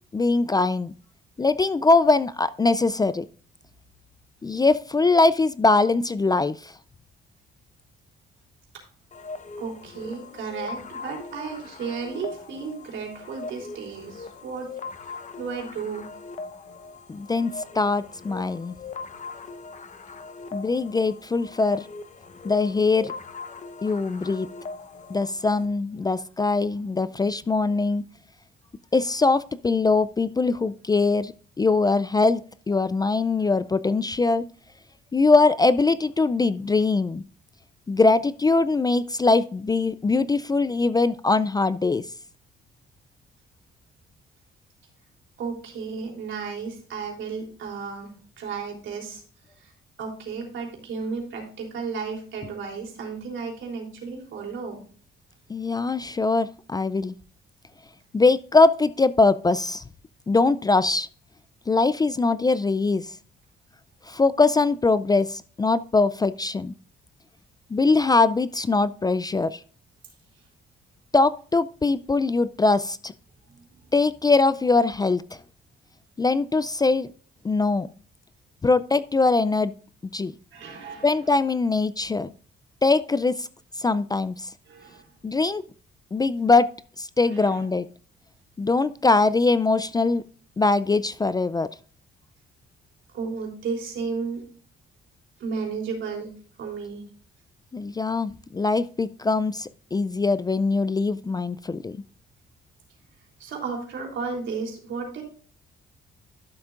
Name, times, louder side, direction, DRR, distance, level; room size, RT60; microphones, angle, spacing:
voice 1, 0.1-0.9 1.4-3.2 4.4-6.7 17.1-18.7 20.5-21.9 22.4-23.1 23.8-24.5 25.1-28.0 28.9-32.4 32.7-34.5 35.1-37.2 37.9-42.0 55.5-57.1 58.1-59.8 60.3-61.1 61.7-63.1 64.1-66.7 67.7-69.6 71.1-73.1 73.9-75.4 76.2-77.1 77.4-77.9 78.6-79.7 80.1-80.3 81.0-82.3 82.8-83.5 83.8-84.5 85.2-85.6 86.1-86.7 87.0-87.9 88.6-90.2 90.6-91.7 97.7-102.0, left 3 dB, 20° left, 15 dB, 0.4 m, -22 dB
sound 1, 9.1-25.7, left 4 dB, 40° left, 1.0 m, -40 dB
voice 2, 9.6-14.7 15.0-16.0 45.4-49.2 49.5-49.7 50.0-54.8 73.5-73.6 80.5-81.3 84.7-85.1 87.2-87.6 93.1-94.4 95.4-96.3 96.6-97.0 103.4-105.2, right 5 dB, 75° right, 0 dB, 3.5 m, -33 dB
12.5 x 7.1 x 2.5 m, 0.42 s
cardioid pair, 90°, 20 cm